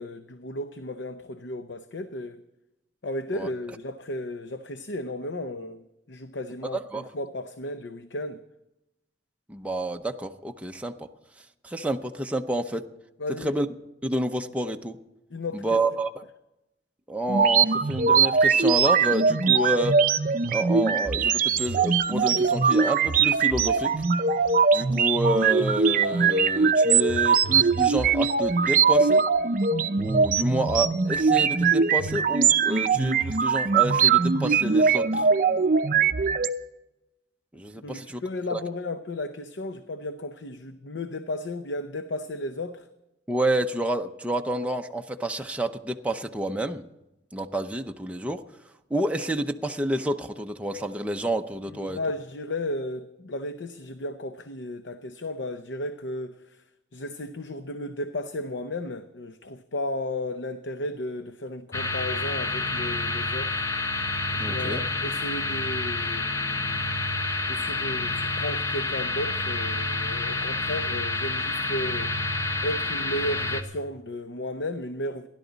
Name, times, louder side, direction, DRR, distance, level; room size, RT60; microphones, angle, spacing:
voice 1, 0.0-2.4 3.0-8.4 13.2-13.6 15.3-15.8 37.8-42.9 51.8-56.6 56.9-63.6 64.3-66.8 67.5-72.2 72.6-75.3, left 1 dB, 90° left, 0.7 m, -34 dB
voice 2, 9.5-11.1 11.6-12.8 13.4-13.7 14.0-15.0 15.5-16.1 17.1-20.0 20.5-23.9 24.7-29.2 30.0-35.3 37.5-38.2 38.5-38.6 43.3-46.8 47.3-48.4 48.9-52.0 64.4-64.8, right 1 dB, 10° right, 0.7 m, -29 dB
sound 1, 17.3-36.5, right 5 dB, 50° right, 0.6 m, -21 dB
sound 2, 61.7-73.6, left 2 dB, 20° left, 0.9 m, -28 dB
29.5 x 11.5 x 4.0 m
head